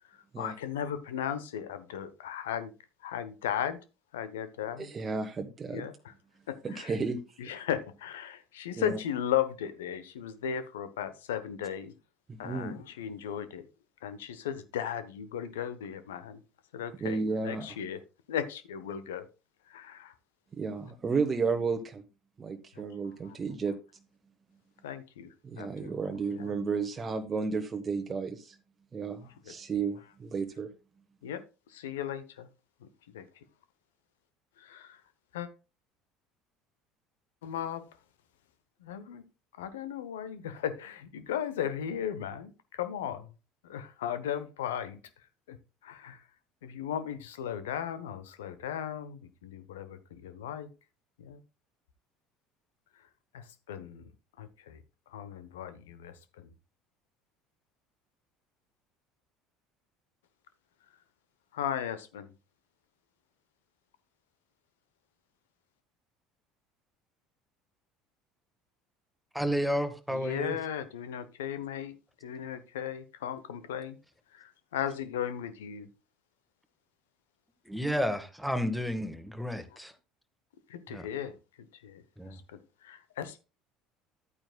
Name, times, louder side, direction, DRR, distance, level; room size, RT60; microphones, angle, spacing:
voice 1, 0.4-2.7 3.0-3.8 4.1-4.9 5.7-6.1 6.5-6.9 7.4-11.9 12.4-13.6 14.0-16.4 16.7-18.0 18.3-19.2 19.7-20.1 23.2-23.4 24.8-25.3 25.6-25.9 26.3-26.5 29.5-29.6 31.2-31.4 31.7-32.5 32.8-32.9 33.1-33.2 34.6-35.0 35.3-35.5 37.4-37.9 38.8-39.2 39.6-43.3 43.7-45.0 45.5-45.6 45.8-46.2 46.6-50.7 51.2-51.4 53.3-54.1 54.4-54.8 55.1-56.5 61.5-62.3 70.1-71.9 72.2-74.0 74.3-75.9 80.7-81.3 81.8-82.0 82.3-83.4, left 9 dB, 75° left, 0.9 m, -36 dB
voice 2, 4.8-5.9 6.6-7.2 7.4-7.5 8.8-9.0 12.3-12.8 17.0-17.8 20.6-22.0 22.4-23.7 25.4-28.6 28.9-30.7, right 4 dB, 30° right, 1.1 m, -33 dB
voice 3, 69.3-70.6 77.6-79.9 80.9-81.1 82.2-82.4, equal, ahead, 1.5 m, -31 dB
11.0 x 8.9 x 2.3 m
hypercardioid pair, 65°, 0 cm